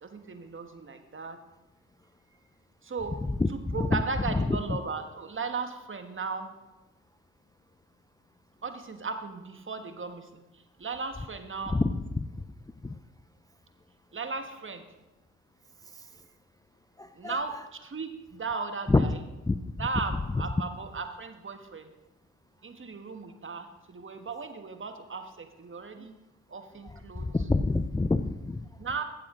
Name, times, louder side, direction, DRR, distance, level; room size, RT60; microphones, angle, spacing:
voice 1, 0.0-1.4 2.8-3.2 3.5-6.5 8.6-11.8 14.1-14.8 17.1-19.2 19.8-21.9 22.6-26.1 26.5-27.3 28.8-29.0, right 4 dB, 35° right, 7 dB, 1.4 m, -36 dB
voice 2, 3.4-4.0 4.3-4.6 11.7-12.3 12.8-12.9 17.0-17.4 18.9-19.1 19.5-19.9 20.3-20.4 26.8-28.6, left 3 dB, 10° left, 10 dB, 0.5 m, -27 dB
15.5 x 7.5 x 3.8 m, 1.1 s
supercardioid pair, 50°, 33 cm